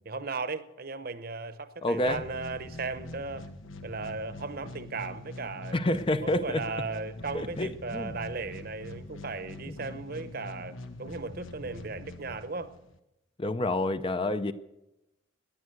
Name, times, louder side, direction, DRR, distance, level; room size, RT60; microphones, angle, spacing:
voice 1, 0.1-3.5 3.8-5.8 6.2-12.7, right 3 dB, 45° right, 12 dB, 0.9 m, -36 dB
voice 2, 1.8-2.2 5.7-6.6 7.3-8.2 9.7-9.8 13.4-14.5, left 1 dB, 25° left, 11 dB, 0.6 m, -28 dB
sound 1, 2.1-13.0, left 2 dB, 80° left, 1.3 m, -44 dB
17.5 x 10.5 x 7.9 m, 0.90 s
head